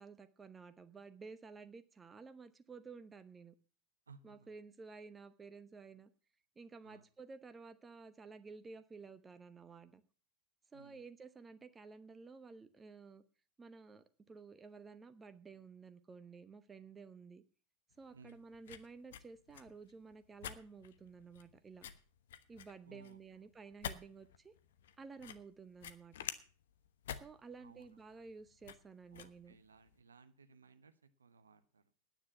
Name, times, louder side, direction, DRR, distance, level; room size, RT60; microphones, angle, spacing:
voice 1, 0.0-3.5 4.2-6.1 6.6-10.0 10.7-13.2 13.6-17.4 18.0-21.9 22.5-24.5 25.0-26.1 27.1-29.6, right 4 dB, 15° right, 10 dB, 1.0 m, -53 dB
voice 2, 4.1-4.6 6.8-7.1 10.7-11.0 18.1-18.4 22.8-23.5 27.6-28.0 29.1-31.9, right 4 dB, 75° right, 10 dB, 1.2 m, -61 dB
sound 1, 17.9-30.0, left 9 dB, 60° left, 1.0 m, -50 dB
10.0 x 9.1 x 8.3 m, 0.40 s
figure-of-eight pair, 90°, 0 cm